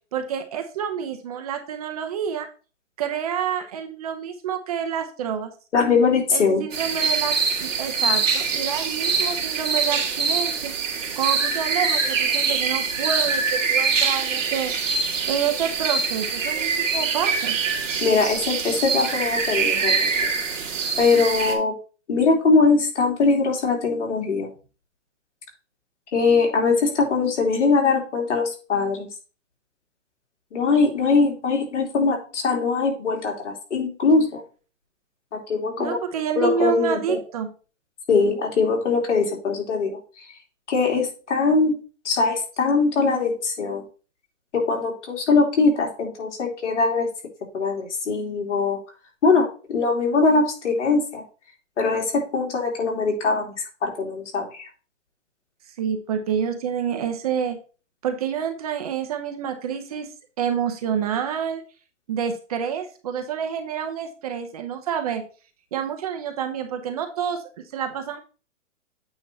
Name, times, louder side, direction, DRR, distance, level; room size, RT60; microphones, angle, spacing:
voice 1, 0.1-2.5 3.0-5.5 6.3-7.3 7.6-10.7 11.2-14.7 15.3-17.6 35.8-37.5 55.8-57.6 58.0-60.1 60.4-61.6 62.1-65.2 65.7-67.4 67.7-68.2, right 8 dB, 30° right, 6 dB, 0.7 m, -28 dB
voice 2, 5.7-6.6 18.0-20.1 20.5-20.7 21.0-21.7 22.1-24.5 26.1-29.1 30.5-34.4 35.3-36.0 36.4-37.2 38.1-40.0 40.7-41.7 42.0-43.8 44.5-47.1 47.5-48.8 49.2-51.2 51.8-53.5 53.8-54.6, left 4 dB, 70° left, 0 dB, 3.1 m, -21 dB
sound 1, 6.7-21.5, right 5 dB, 90° right, 2.1 m, -24 dB
8.7 x 3.0 x 5.4 m, 0.36 s
hypercardioid pair, 160°, 37 cm